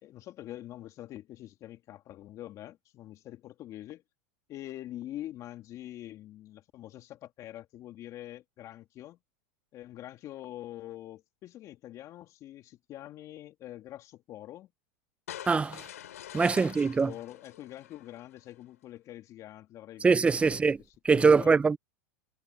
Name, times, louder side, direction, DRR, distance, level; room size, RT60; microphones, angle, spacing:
voice 1, 0.0-4.0 4.5-9.2 9.7-14.7 16.4-20.8 21.1-21.6, left 13 dB, 45° left, 2.8 m, -45 dB
sound 1, 15.3-18.5, left 11 dB, 90° left, 4.3 m, -46 dB
voice 2, 15.5-15.8 16.3-17.1 20.0-20.8 21.0-21.8, right 4 dB, 15° right, 0.6 m, -23 dB
hypercardioid pair, 105°, 8 cm